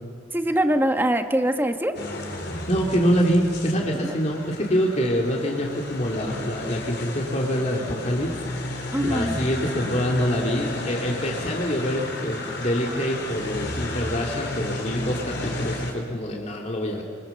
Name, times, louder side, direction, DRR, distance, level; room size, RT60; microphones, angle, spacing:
voice 1, 0.3-1.9 4.0-4.1 8.9-9.4, right 1 dB, 10° right, 6 dB, 1.3 m, -23 dB
sound 1, 1.9-15.9, left 2 dB, 55° left, 4.0 m, -33 dB
voice 2, 2.7-17.0, equal, 35° left, -1 dB, 2.5 m, -25 dB
25.0 x 24.0 x 7.1 m, 2.5 s
head